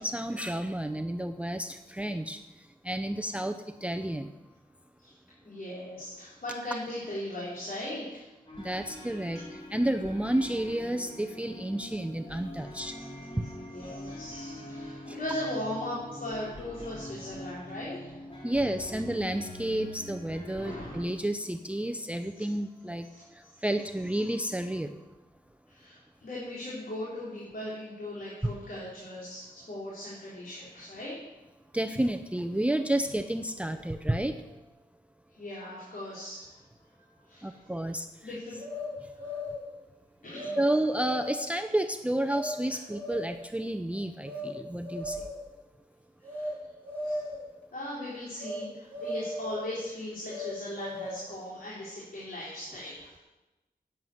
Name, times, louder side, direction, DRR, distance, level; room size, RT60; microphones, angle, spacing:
voice 1, 0.0-2.4 2.8-4.3 8.6-13.0 13.4-13.5 15.1-15.2 18.4-23.1 23.3-25.0 31.7-34.4 37.4-38.1 40.6-45.2, right 1 dB, 10° right, 9 dB, 0.6 m, -31 dB
voice 2, 5.4-8.3 9.0-9.1 12.9-13.1 13.7-18.2 20.6-21.0 22.4-22.5 23.1-23.6 25.7-31.2 35.3-36.6 36.9-37.6 38.2-38.6 39.0-39.4 40.2-40.6 46.2-46.5 47.0-47.3 47.7-53.2, left 1 dB, 70° left, -6 dB, 4.0 m, -39 dB
sound 1, 8.5-21.0, left 1 dB, 35° left, 3.1 m, -44 dB
sound 2, 38.6-39.7 40.3-40.6 40.9-41.5 42.3-42.5 42.9-43.4 44.2-44.5 44.8-45.5 46.2-46.5 46.8-47.5 48.4-48.6 48.9-49.7 50.3-51.3, left 1 dB, 10° left, 4.7 m, -37 dB
11.0 x 9.2 x 8.0 m, 1.1 s
wide cardioid pair, 85°, 16 cm